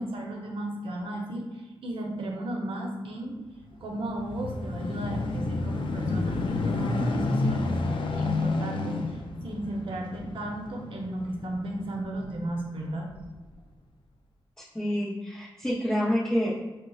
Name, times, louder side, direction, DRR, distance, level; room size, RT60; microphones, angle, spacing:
voice 1, 0.0-3.3 3.8-7.8 8.2-13.1, right 1 dB, 70° right, 0 dB, 0.7 m, -34 dB
sound 1, 3.7-12.5 13.1-13.2, left 3 dB, 65° left, 0.4 m, -30 dB
voice 2, 14.7-16.5, equal, 5° left, -8 dB, 0.5 m, -27 dB
5.1 x 2.0 x 2.3 m, 1.1 s
wide cardioid pair, 90°, 9 cm